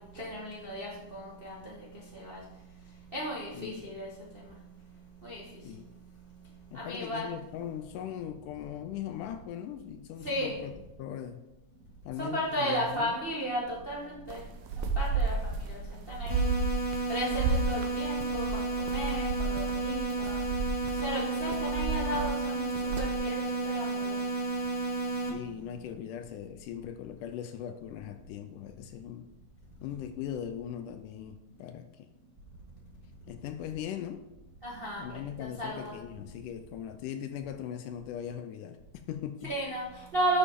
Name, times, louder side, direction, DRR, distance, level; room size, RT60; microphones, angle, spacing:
voice 1, 0.1-1.8 2.1-2.4 3.1-4.4 5.2-5.4 6.7-7.3 10.2-10.5 12.2-14.4 14.8-15.8 16.1-16.5 17.1-20.4 21.0-22.7 23.0-24.2 34.6-36.0 39.4-40.4, right 1 dB, 40° right, -4 dB, 0.8 m, -34 dB
voice 2, 3.5-3.9 5.6-5.9 6.7-10.7 11.0-11.4 12.1-13.1 25.3-29.3 29.8-32.1 33.3-34.2 35.0-39.5, left 10 dB, 80° left, 8 dB, 2.0 m, -39 dB
sound 1, 14.3-23.2, right 3 dB, 90° right, 2.6 m, -33 dB
sound 2, 16.3-25.3, right 3 dB, 40° left, 1.1 m, -32 dB
11.0 x 7.2 x 3.7 m, 0.92 s
omnidirectional pair, 4.0 m